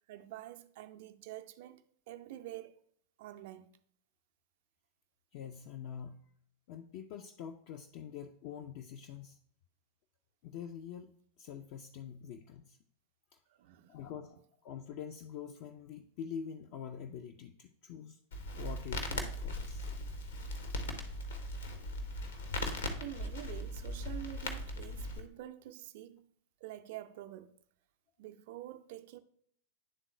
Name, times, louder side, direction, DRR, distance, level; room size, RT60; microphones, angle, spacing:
voice 1, 0.1-2.8 3.2-3.7 13.5-14.0 23.0-26.3 26.6-27.5 28.2-29.2, right 13 dB, 50° right, 0.5 m, -47 dB
voice 2, 5.3-6.3 6.7-9.4 10.4-12.8 13.3-13.4 13.9-18.2 18.5-19.9, left 8 dB, 45° left, 0.4 m, -45 dB
Crackle, 18.3-25.2, left 1 dB, 65° left, 1.0 m, -39 dB
10.5 x 3.7 x 3.0 m
figure-of-eight pair, 90°, 0 cm